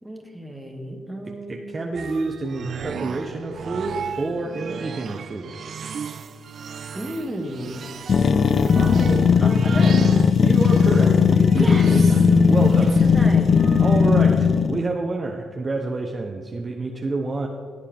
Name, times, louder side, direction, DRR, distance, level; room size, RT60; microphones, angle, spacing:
voice 1, 0.0-1.8 6.9-7.9 8.2-8.5 8.8-10.0 11.6-11.9 12.8-13.5, right 1 dB, 10° right, 2 dB, 1.9 m, -32 dB
voice 2, 1.3-5.6 10.4-13.0 13.8-17.5, right 3 dB, 30° right, 1 dB, 0.9 m, -28 dB
sound 1, 1.9-14.3, right 6 dB, 55° right, 0.6 m, -34 dB
sound 2, 8.1-14.9, left 6 dB, 45° left, 0.4 m, -17 dB
16.5 x 8.3 x 3.6 m, 2.1 s
cardioid pair, 90°, 0 cm